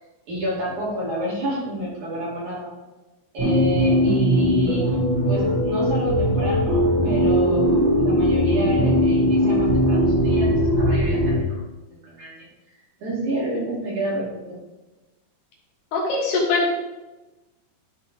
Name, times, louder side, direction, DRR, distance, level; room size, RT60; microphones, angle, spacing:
voice 1, 0.3-2.7 3.3-5.0 5.3-11.6 11.9-12.5 13.0-14.6, equal, 45° right, -7 dB, 3.5 m, -29 dB
sound 1, 3.4-11.4, equal, 70° right, 4.6 m, -19 dB
voice 2, 15.9-16.8, left 3 dB, 70° left, -3 dB, 3.1 m, -22 dB
12.5 x 4.3 x 4.6 m, 1.1 s
omnidirectional pair, 5.5 m